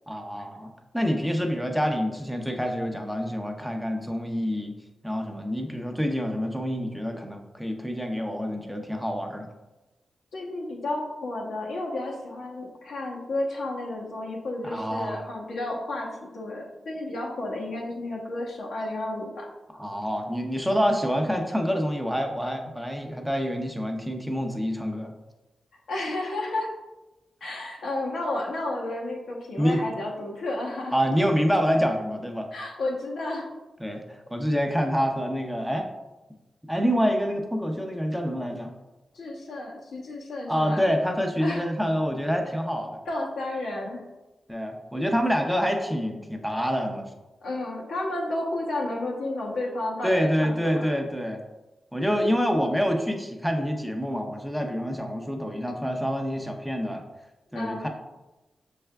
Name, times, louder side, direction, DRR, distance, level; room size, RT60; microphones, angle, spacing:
voice 1, 0.1-4.8 5.0-9.5 14.6-15.2 19.7-25.1 29.6-29.8 30.9-32.5 33.8-35.9 36.7-38.7 40.5-43.0 44.5-47.0 50.0-51.4 51.9-57.0 57.5-57.9, equal, ahead, 3 dB, 0.5 m, -27 dB
voice 2, 10.3-19.4 25.9-26.7 27.4-30.9 32.5-33.5 39.1-40.8 41.4-41.6 43.1-44.0 47.4-50.8 57.5-57.9, left 2 dB, 90° left, -2 dB, 0.9 m, -32 dB
5.5 x 3.3 x 2.2 m, 1.0 s
cardioid pair, 80°, 0 cm